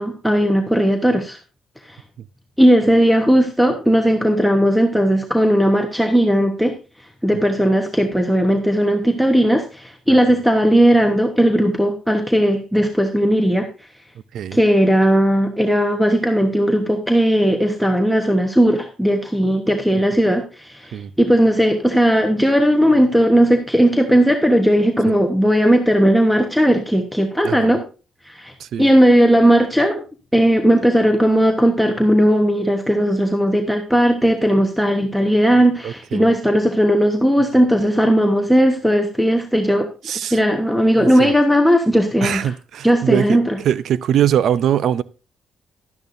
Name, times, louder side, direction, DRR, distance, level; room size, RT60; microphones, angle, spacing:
voice 1, 0.0-1.4 1.9-2.0 2.6-6.8 7.2-13.7 14.5-27.8 28.2-28.5 28.8-30.0 30.3-39.9 40.3-42.5 42.8-43.6, equal, ahead, 1.1 m, -16 dB
voice 2, 27.4-27.8 28.6-28.9 35.8-36.3 40.0-40.4 40.9-41.3 42.2-43.4 43.6-45.0, right 10 dB, 70° right, 0.5 m, -22 dB
12.0 x 10.5 x 2.6 m
cardioid pair, 90°, 0 cm